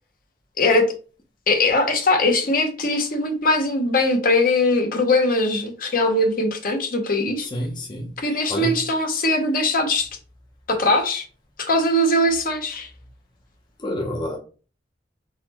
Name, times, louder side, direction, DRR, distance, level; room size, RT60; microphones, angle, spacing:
voice 1, 0.6-0.9 1.5-7.5 8.2-10.1 10.7-11.2 11.6-12.9, left 2 dB, 50° left, 0.9 m, -21 dB
voice 2, 7.5-8.1 8.5-8.7 13.8-14.4, left 1 dB, 25° left, 0.7 m, -27 dB
4.1 x 4.0 x 2.9 m
head